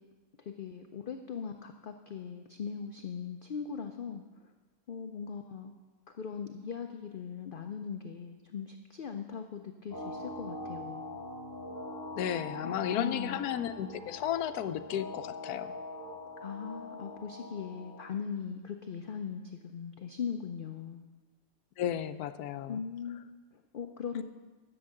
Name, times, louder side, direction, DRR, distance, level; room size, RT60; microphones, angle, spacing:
voice 1, 0.5-4.2 4.9-5.7 6.2-11.2 12.6-13.4 16.4-21.0 22.7-24.2, left 6 dB, 55° left, 5 dB, 0.6 m, -40 dB
sound 1, 9.9-18.0, left 2 dB, 10° right, 3.0 m, -42 dB
voice 2, 12.2-15.8 21.8-22.8, left 10 dB, 85° left, 12 dB, 1.1 m, -34 dB
11.5 x 7.1 x 7.7 m, 1.3 s
omnidirectional pair, 1.6 m